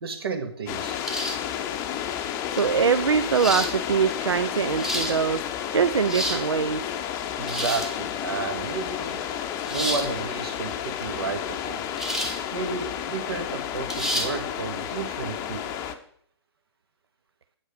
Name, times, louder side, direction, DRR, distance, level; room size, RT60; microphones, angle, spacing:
voice 1, 0.0-1.0 7.4-9.2 9.7-11.8 12.5-15.6, right 4 dB, 60° right, 6 dB, 1.9 m, -32 dB
sound 1, 0.7-15.9, left 9 dB, 20° left, 0.7 m, -31 dB
sound 2, 1.0-1.5 2.6-2.7 3.3-3.7 4.6-5.1 5.9-6.4 7.4-7.9 9.7-10.1 12.0-12.4 12.8-12.9 13.9-14.3, equal, 5° right, 1.0 m, -29 dB
voice 2, 2.5-5.4 5.7-6.9, right 6 dB, 80° right, 12 dB, 0.5 m, -23 dB
8.8 x 6.4 x 5.2 m, 0.63 s
figure-of-eight pair, 130°, 14 cm